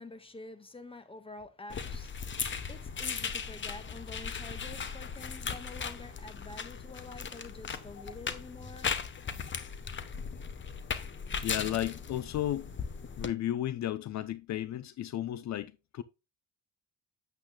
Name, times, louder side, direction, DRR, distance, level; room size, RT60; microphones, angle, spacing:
voice 1, 0.0-8.9, left 2 dB, 20° left, 1.5 m, -48 dB
sound 1, 1.7-13.3, left 6 dB, 40° left, 1.1 m, -38 dB
voice 2, 11.4-12.7 13.2-16.0, left 12 dB, 65° left, 0.7 m, -34 dB
8.7 x 8.6 x 2.3 m
cardioid pair, 90°, 30 cm